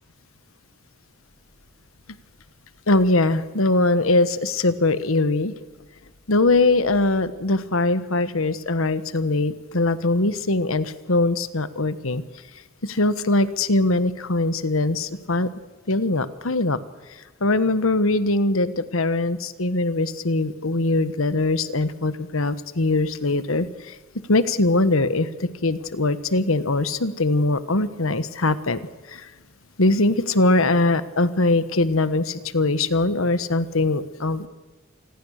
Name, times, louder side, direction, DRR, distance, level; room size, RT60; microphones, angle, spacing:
voice 1, 2.9-5.5 6.3-12.2 12.9-15.5 15.9-16.8 17.4-23.7 24.3-25.3 25.6-28.8 29.1-29.2 29.8-34.5, left 2 dB, 80° left, 14 dB, 1.3 m, -21 dB
27.5 x 20.0 x 6.6 m, 1.3 s
head